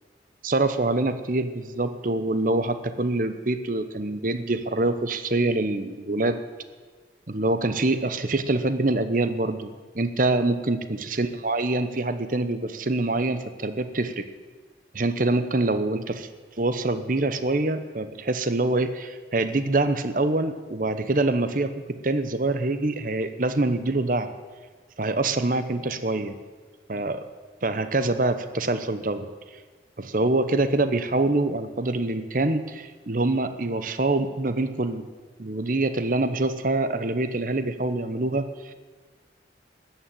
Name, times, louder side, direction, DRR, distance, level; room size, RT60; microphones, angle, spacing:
voice 1, 0.4-6.4 7.3-14.3 14.9-16.3 16.6-24.3 25.0-26.4 26.9-27.2 27.6-29.3 30.0-35.0 35.4-38.7, right 2 dB, 45° right, 10 dB, 0.9 m, -25 dB
14.0 x 9.0 x 9.1 m, 1.4 s
head